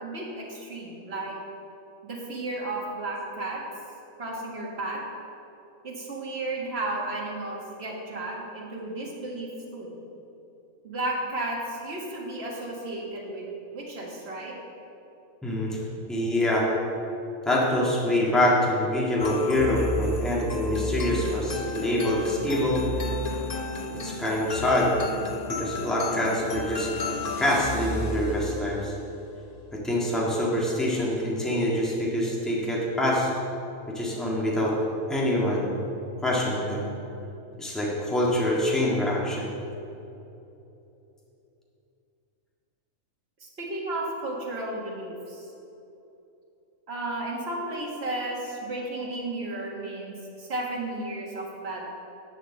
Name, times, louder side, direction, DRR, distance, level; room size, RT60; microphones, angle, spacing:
voice 1, 0.0-1.3 2.0-3.6 4.2-5.0 5.8-10.0 10.8-14.5 43.4-45.5 46.9-51.9, right 2 dB, 50° right, -3 dB, 2.0 m, -33 dB
voice 2, 15.4-15.8 16.1-16.7 17.4-22.8 24.0-24.9 25.5-26.9 27.4-28.9 29.7-33.3 33.9-34.7 35.1-35.8 36.2-36.9 37.6-39.5, left 1 dB, ahead, -5 dB, 1.7 m, -25 dB
sound 1, 19.2-28.9, left 2 dB, 35° left, 0.8 m, -33 dB
10.5 x 5.1 x 7.5 m, 2.9 s
omnidirectional pair, 1.4 m